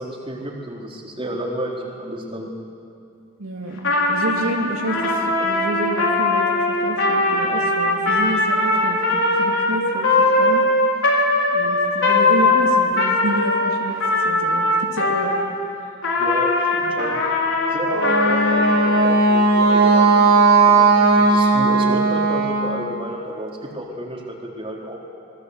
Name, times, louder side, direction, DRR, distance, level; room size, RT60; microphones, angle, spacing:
voice 1, 0.0-2.5 16.2-17.2 17.7-20.4 20.7-25.0, equal, 25° right, -2 dB, 3.8 m, -31 dB
voice 2, 3.4-3.8 4.1-10.6 11.5-15.3, right 1 dB, 90° right, 1 dB, 2.6 m, -29 dB
Trumpet, 3.8-15.5 16.0-19.0, left 2 dB, 65° left, 4.2 m, -20 dB
Wind instrument woodwind instrument, 17.8-22.8, right 3 dB, 70° right, 4.3 m, -16 dB
26.0 x 20.0 x 8.0 m, 2.4 s
head